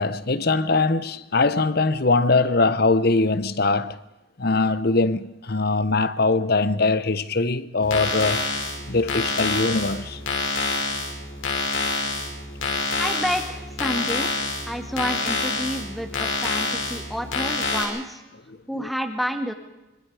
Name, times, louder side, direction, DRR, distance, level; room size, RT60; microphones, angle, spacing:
voice 1, 0.0-4.0 4.4-8.4 8.9-10.2 18.5-18.9, left 3 dB, 50° left, 1.0 m, -22 dB
sound 1, 7.8-17.8, left 3 dB, 75° left, 6.2 m, -27 dB
voice 2, 13.0-14.3 14.7-18.2 18.7-19.5, equal, ahead, 2.2 m, -29 dB
25.5 x 24.5 x 4.9 m
head